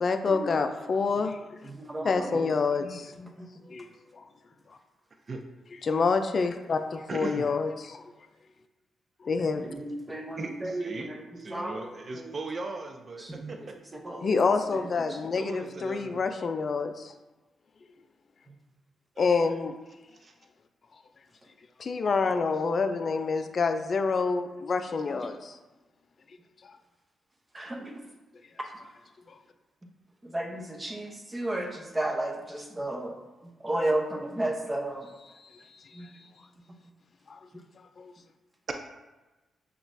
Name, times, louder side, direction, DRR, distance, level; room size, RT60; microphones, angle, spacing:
voice 1, 0.0-1.7 2.0-3.9 4.1-4.2 5.8-8.0 9.2-9.7 14.2-17.1 19.2-19.7 21.8-25.6 26.6-26.7 35.3-36.2 37.3-37.5 38.0-38.1, left 4 dB, 55° left, 8 dB, 0.3 m, -28 dB
voice 2, 1.7-2.4 2.8-3.4 9.6-11.2 11.5-12.3 13.2-13.5 14.0-14.4 27.5-27.9 30.2-33.1 33.6-35.1 35.9-36.1, right 1 dB, 25° right, 1 dB, 0.8 m, -33 dB
voice 3, 7.1-7.5 10.4-11.1 11.4-13.6 15.2-16.2 19.2-19.6 20.1-20.3, right 3 dB, 45° right, 4 dB, 0.4 m, -38 dB
5.7 x 2.4 x 2.6 m, 1.1 s
supercardioid pair, 55°, 0 cm